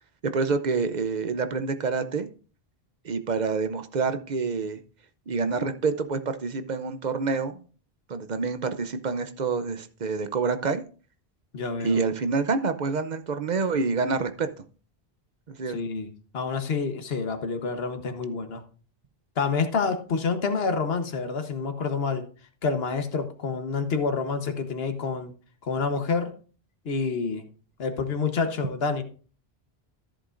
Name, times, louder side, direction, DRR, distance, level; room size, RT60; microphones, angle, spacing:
voice 1, 0.3-2.3 3.0-4.8 5.3-7.5 8.1-10.8 11.8-14.5 15.5-15.8, right 4 dB, 50° right, 10 dB, 0.7 m, -27 dB
voice 2, 11.5-12.0 15.7-16.1 16.3-18.6 19.4-22.2 22.6-25.3 25.6-26.3 26.8-27.5 27.8-29.0, left 5 dB, 70° left, 7 dB, 1.3 m, -28 dB
13.5 x 7.6 x 2.5 m, 0.39 s
omnidirectional pair, 1.0 m